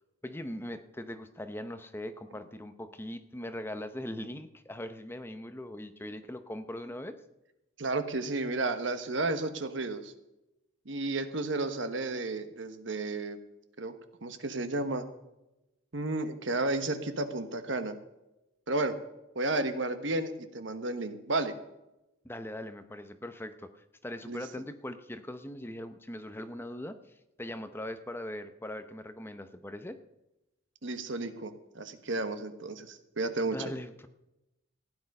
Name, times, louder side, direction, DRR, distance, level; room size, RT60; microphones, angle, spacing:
voice 1, 0.2-7.2 22.2-27.0 27.4-30.0 33.5-34.1, left 1 dB, 10° left, 9 dB, 0.7 m, -40 dB
voice 2, 7.8-10.1 10.8-13.4 13.8-13.9 14.2-15.0 15.9-18.0 18.7-19.0 19.3-21.5 24.3-24.4 30.8-33.7, right 2 dB, 65° right, 9 dB, 1.2 m, -32 dB
15.5 x 10.0 x 5.4 m, 0.93 s
head